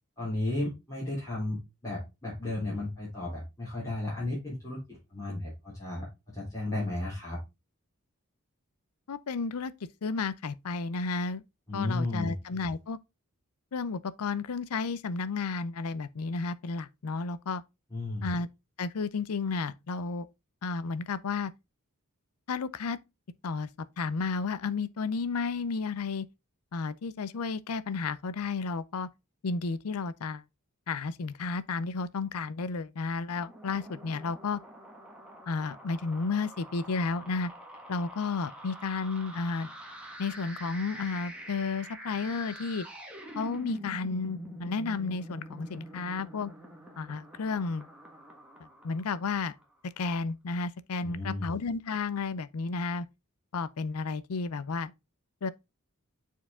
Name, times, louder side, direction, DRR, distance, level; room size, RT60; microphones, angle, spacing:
voice 1, 0.2-7.4 11.7-12.4 17.9-18.3 51.0-51.5, left 2 dB, 15° left, 3.5 m, -34 dB
voice 2, 9.1-9.7 10.0-11.4 11.7-13.0 13.7-17.6 18.2-18.5 18.8-20.3 20.6-21.5 22.5-23.0 23.4-23.7 24.0-26.3 26.7-29.1 29.4-30.4 30.9-34.6 35.5-37.5 37.9-39.7 40.2-42.9 43.3-46.5 47.0-47.9 48.8-49.5 49.8-53.1 53.5-54.9 55.4-55.5, left 4 dB, 85° left, 0.5 m, -32 dB
sound 1, 33.3-49.6, equal, 5° right, 1.5 m, -46 dB
7.0 x 4.6 x 3.6 m
head